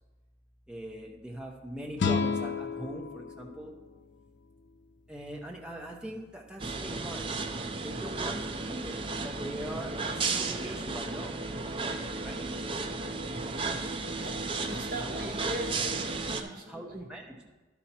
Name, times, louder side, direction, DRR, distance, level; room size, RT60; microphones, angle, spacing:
voice 1, 0.7-3.7 5.1-11.4 12.2-12.5 16.5-17.5, right 1 dB, 5° right, -1 dB, 0.9 m, -42 dB
sound 1, 2.0-5.0, left 5 dB, 65° left, 0.5 m, -33 dB
sound 2, 6.6-16.4, right 3 dB, 25° right, 0.5 m, -34 dB
voice 2, 14.7-17.1, equal, 45° right, -2 dB, 1.6 m, -40 dB
11.5 x 5.7 x 4.3 m, 1.2 s
head